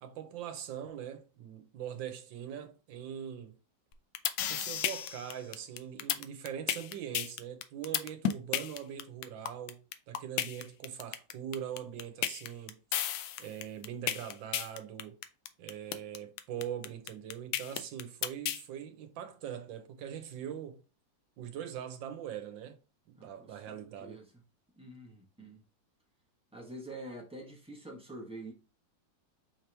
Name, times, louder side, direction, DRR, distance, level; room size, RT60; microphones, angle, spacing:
voice 1, 0.0-3.5 4.5-12.8 13.4-15.2 15.6-20.8 21.4-22.8 23.1-24.2, right 9 dB, 85° right, 1.5 m, -42 dB
sound 1, 3.9-18.6, left 11 dB, 75° left, 1.2 m, -33 dB
voice 2, 23.2-24.2 24.8-25.6 26.5-28.5, right 1 dB, 5° right, 0.7 m, -46 dB
5.5 x 2.9 x 3.3 m
omnidirectional pair, 2.0 m